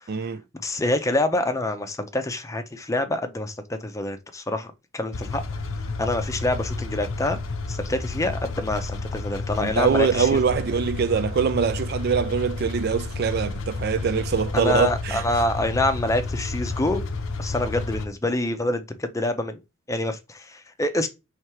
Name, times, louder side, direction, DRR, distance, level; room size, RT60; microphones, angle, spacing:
voice 1, 0.1-0.4 9.6-15.2, right 6 dB, 50° right, 0.3 m, -23 dB
voice 2, 0.6-5.4 6.0-7.4 7.7-10.4 14.5-17.0 17.4-19.6 19.9-21.1, left 2 dB, 15° left, 0.5 m, -26 dB
sound 1, 5.1-18.1, left 3 dB, 75° left, 0.6 m, -31 dB
3.2 x 3.0 x 4.7 m
head